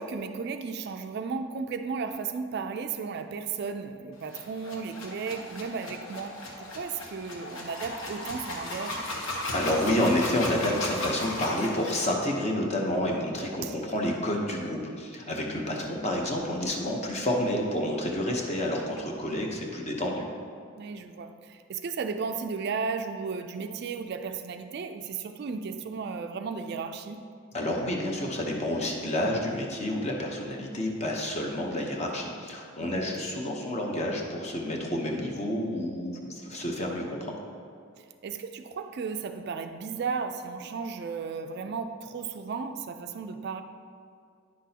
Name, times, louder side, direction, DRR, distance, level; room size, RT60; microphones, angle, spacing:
voice 1, 0.0-9.0 13.2-13.3 13.6-13.8 20.8-27.2 32.8-33.1 38.2-43.6, right 5 dB, 50° right, 8 dB, 0.3 m, -34 dB
sound 1, 4.2-12.1, left 1 dB, 75° left, 1.0 m, -36 dB
voice 2, 9.5-20.3 27.5-37.4, left 1 dB, 30° left, 0 dB, 0.8 m, -29 dB
9.6 x 6.0 x 2.8 m, 2.3 s
head